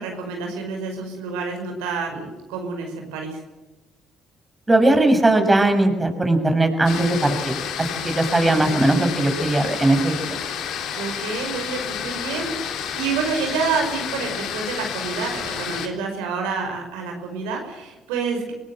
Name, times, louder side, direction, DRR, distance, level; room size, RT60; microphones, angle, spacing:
voice 1, 0.0-3.4 8.0-8.9 10.9-18.5, right 5 dB, 85° right, 3 dB, 5.5 m, -28 dB
voice 2, 4.7-7.5 8.0-10.4, right 2 dB, 20° right, 5 dB, 6.7 m, -19 dB
sound 1, 6.8-15.9, left 8 dB, 70° left, 3.3 m, -30 dB
25.0 x 18.5 x 7.8 m, 1.1 s
hypercardioid pair, 60°, 0 cm